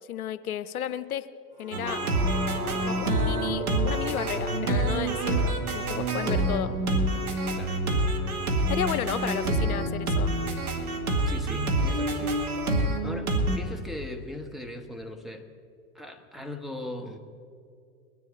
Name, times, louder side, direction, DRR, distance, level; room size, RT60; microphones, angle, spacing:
voice 1, 0.1-1.3 1.6-2.0 2.8-6.7 8.7-10.3, left 10 dB, 75° left, 12 dB, 0.7 m, -33 dB
sound 1, 1.5-7.7 8.1-8.2, right 1 dB, 40° right, 3.5 m, -38 dB
sound 2, 1.7-13.6, right 1 dB, 80° right, 1.6 m, -27 dB
voice 2, 11.3-12.4 13.0-15.5 15.9-17.2, left 1 dB, ahead, 2 dB, 1.1 m, -39 dB
22.0 x 10.0 x 4.0 m, 2.4 s
figure-of-eight pair, 95°, 43 cm